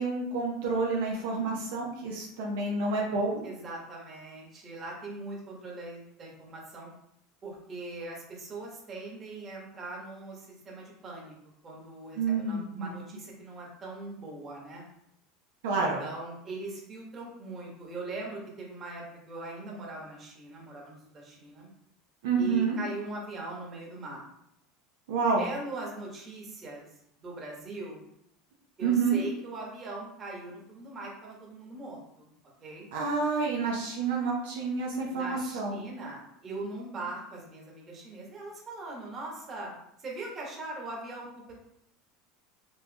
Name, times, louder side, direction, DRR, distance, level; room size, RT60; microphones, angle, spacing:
voice 1, 0.0-3.4 12.2-12.9 15.6-16.0 22.2-22.8 25.1-25.5 28.8-29.2 32.9-35.8, right 4 dB, 85° right, -2 dB, 0.7 m, -28 dB
voice 2, 3.4-6.9 7.4-11.3 11.6-14.8 15.7-21.7 22.4-24.2 25.4-26.8 27.2-28.1 28.8-32.3 32.6-32.9 35.1-39.7 40.0-41.5, right 2 dB, 30° right, -3 dB, 1.3 m, -41 dB
4.3 x 2.9 x 2.3 m, 0.76 s
supercardioid pair, 110°, 0 cm